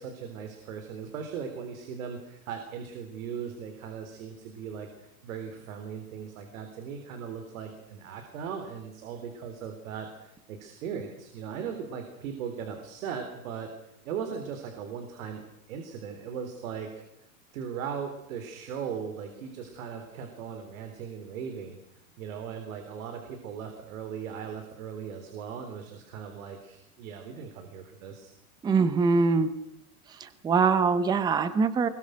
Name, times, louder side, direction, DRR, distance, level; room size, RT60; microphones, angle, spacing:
voice 1, 0.0-13.7 14.0-17.0 17.5-21.8 22.2-28.3, right 7 dB, 70° right, 6 dB, 3.8 m, -38 dB
voice 2, 28.6-29.5 30.2-31.9, right 4 dB, 10° right, 13 dB, 0.8 m, -23 dB
23.5 x 22.0 x 6.4 m, 0.82 s
supercardioid pair, 170°, 43 cm